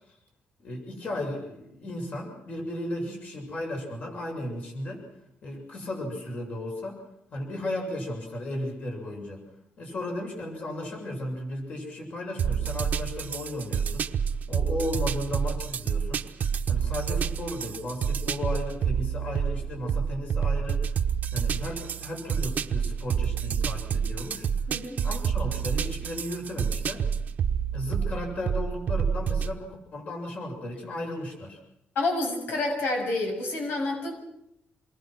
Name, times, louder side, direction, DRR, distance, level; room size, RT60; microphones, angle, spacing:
voice 1, 0.6-5.1 5.4-7.0 7.3-9.4 9.8-14.1 14.5-16.2 16.7-20.8 21.3-24.5 25.0-27.0 27.7-31.6, left 1 dB, 45° left, 1 dB, 7.1 m, -35 dB
sound 1, 12.4-29.5, right 7 dB, 50° right, 1.2 m, -28 dB
voice 2, 24.7-25.0 32.0-34.1, left 2 dB, 75° left, 2 dB, 7.3 m, -28 dB
28.0 x 22.0 x 6.3 m, 0.79 s
wide cardioid pair, 165°, 4 cm